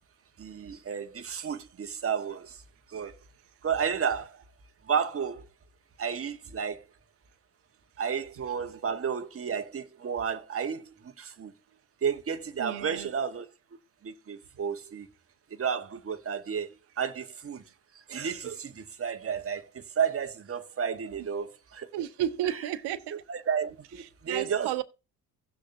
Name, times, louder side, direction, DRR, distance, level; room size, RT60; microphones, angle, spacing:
voice 1, 0.4-2.6 2.9-3.1 3.6-4.4 4.8-5.5 6.0-6.9 8.0-11.5 12.0-13.5 14.0-15.1 15.6-17.6 18.1-21.9 22.4-22.6 23.3-24.8, right 7 dB, 30° right, 1.3 m, -32 dB
voice 2, 12.6-13.1 21.9-23.1 24.3-24.8, right 11 dB, 55° right, 1.2 m, -32 dB
17.0 x 6.4 x 2.7 m
hypercardioid pair, 65°, 47 cm